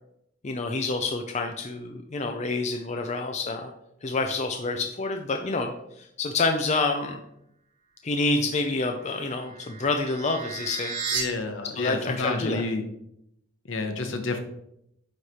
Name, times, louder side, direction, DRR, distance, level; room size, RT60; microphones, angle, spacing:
voice 1, 0.4-3.7 4.0-5.7 6.0-7.2 8.0-11.0 11.6-12.6, left 3 dB, 35° left, 4 dB, 0.5 m, -28 dB
sound 1, 9.0-11.2, right 5 dB, 35° right, 1.0 m, -34 dB
voice 2, 11.1-12.8 13.7-14.4, left 3 dB, 65° left, 6 dB, 0.9 m, -29 dB
9.3 x 3.2 x 4.2 m, 0.79 s
head